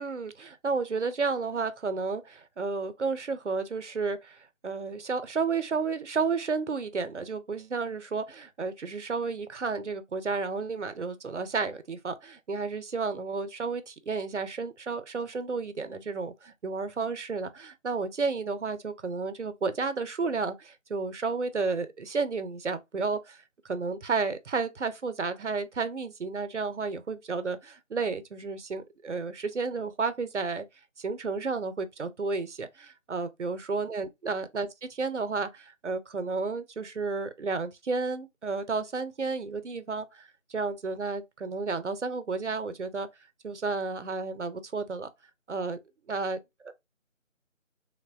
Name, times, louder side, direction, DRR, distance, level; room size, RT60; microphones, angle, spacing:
voice 1, 0.0-4.4 4.6-23.4 23.6-30.6 31.0-40.2 40.5-43.1 43.4-45.1 45.5-45.8 46.1-46.7, right 4 dB, 65° right, 0.5 m, -32 dB
3.4 x 2.1 x 2.3 m
figure-of-eight pair, 180°, 39 cm